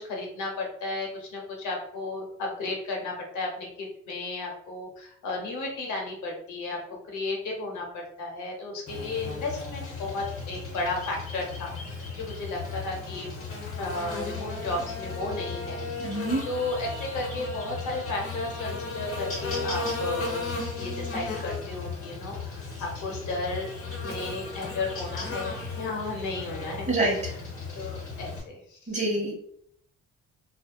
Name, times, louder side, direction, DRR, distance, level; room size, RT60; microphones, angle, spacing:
voice 1, 0.0-6.8 7.0-13.3 13.8-16.2 16.4-23.7 24.0-27.2 27.7-29.2, left 2 dB, 75° left, 0 dB, 0.9 m, -34 dB
Buzz, 8.9-28.4, left 3 dB, 45° left, 1.0 m, -35 dB
voice 2, 16.0-16.4 26.9-27.2 28.9-29.3, right 2 dB, 25° right, -2 dB, 0.8 m, -26 dB
2.6 x 2.1 x 2.2 m, 0.66 s
cardioid pair, 90°, 30 cm